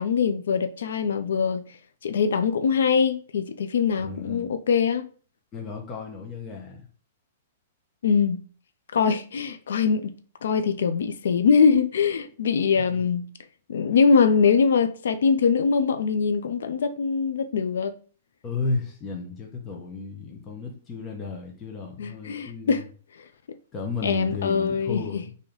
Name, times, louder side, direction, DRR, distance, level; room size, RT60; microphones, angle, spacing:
voice 1, 0.0-1.6 2.0-5.1 8.0-8.4 8.9-10.2 10.4-13.3 13.7-17.9 22.0-22.8 24.0-25.2, left 6 dB, 85° left, 0.3 m, -22 dB
voice 2, 4.0-4.5 5.5-6.9 12.9-13.1 18.4-22.8 23.7-25.3, left 4 dB, 20° left, 0.6 m, -33 dB
3.1 x 2.6 x 3.8 m
hypercardioid pair, 165°, 0 cm